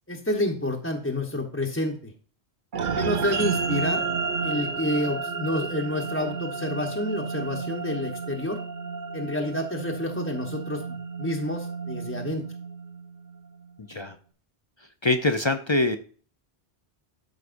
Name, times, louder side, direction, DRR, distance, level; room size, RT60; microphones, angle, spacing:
voice 1, 0.1-2.1 3.0-4.1 4.4-8.6 9.1-12.4, left 1 dB, 15° left, -1 dB, 1.0 m, -29 dB
sound 1, 2.7-13.4, right 5 dB, 55° right, 0.7 m, -31 dB
voice 2, 15.0-16.0, left 2 dB, 40° left, 8 dB, 0.4 m, -23 dB
13.0 x 4.8 x 2.5 m, 0.43 s
omnidirectional pair, 1.1 m